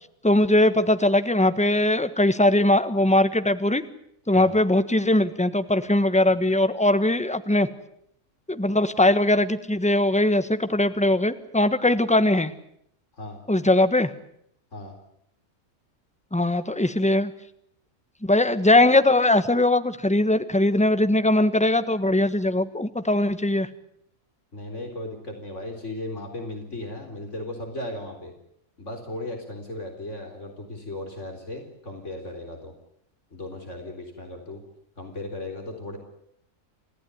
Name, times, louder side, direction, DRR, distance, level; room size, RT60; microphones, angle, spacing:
voice 1, 0.2-3.8 4.3-7.7 8.5-12.5 13.5-14.1 16.3-17.3 18.2-23.7, left 1 dB, 5° left, 10 dB, 1.3 m, -20 dB
voice 2, 24.5-28.3 28.8-32.7 33.3-34.6 35.0-36.0, left 1 dB, 60° left, 4 dB, 4.4 m, -36 dB
30.0 x 15.5 x 9.8 m, 0.72 s
omnidirectional pair, 1.4 m